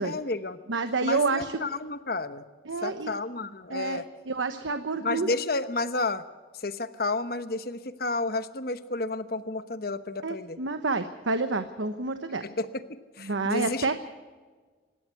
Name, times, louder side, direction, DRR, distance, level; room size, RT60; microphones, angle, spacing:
voice 1, 0.0-0.6 1.0-2.4 2.8-4.0 5.0-6.2 6.6-10.6 12.4-13.9, left 3 dB, 50° left, 12 dB, 1.0 m, -31 dB
voice 2, 0.7-1.6 2.7-3.1 3.7-5.3 10.2-12.4 13.2-13.9, right 3 dB, 85° right, 9 dB, 1.1 m, -29 dB
26.0 x 12.0 x 8.3 m, 1.4 s
head